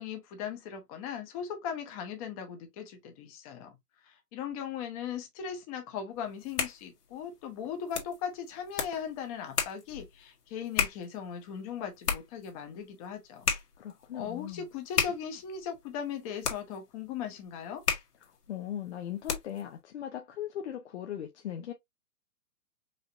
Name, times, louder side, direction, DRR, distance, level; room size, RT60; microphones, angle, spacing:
voice 1, 0.0-3.7 4.0-13.5 14.1-17.8, left 8 dB, 25° left, 1.0 m, -38 dB
sound 1, 6.2-19.7, left 6 dB, 80° left, 1.6 m, -36 dB
voice 2, 13.8-14.7 18.2-21.7, left 10 dB, 45° left, 0.6 m, -39 dB
4.9 x 2.8 x 2.5 m
hypercardioid pair, 150°, 46 cm